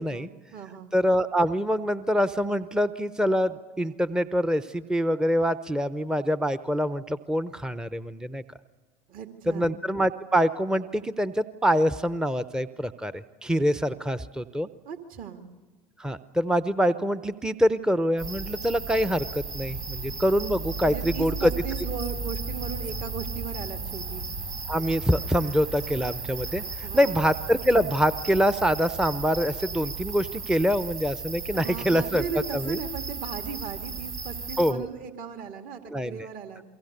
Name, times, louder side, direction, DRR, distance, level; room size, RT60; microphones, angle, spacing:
voice 1, 0.0-0.9 9.1-9.8 14.9-15.4 20.8-24.2 26.8-27.2 31.5-36.6, right 7 dB, 50° right, 5 dB, 2.3 m, -37 dB
voice 2, 0.9-8.4 9.5-14.7 16.0-21.5 24.7-32.8 34.6-34.9 35.9-36.3, equal, 5° right, 13 dB, 0.8 m, -25 dB
sound 1, 18.2-34.7, right 3 dB, 80° right, 3.9 m, -35 dB
29.0 x 23.5 x 6.7 m, 1.3 s
hypercardioid pair, 75°, 19 cm